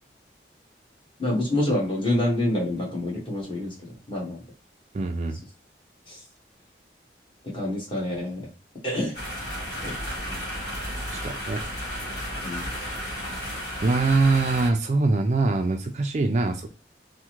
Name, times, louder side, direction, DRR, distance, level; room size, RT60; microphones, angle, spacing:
voice 1, 1.2-4.4 6.1-6.2 7.4-8.5 8.8-9.2 9.8-9.9 10.2-10.5 12.4-12.7, left 1 dB, 30° left, -4 dB, 1.4 m, -27 dB
voice 2, 4.9-5.4 11.1-11.6 13.8-16.7, right 3 dB, 40° right, 6 dB, 0.3 m, -23 dB
sound 1, 9.1-14.7, equal, 60° left, 1.5 m, -33 dB
3.5 x 2.1 x 2.9 m, 0.33 s
head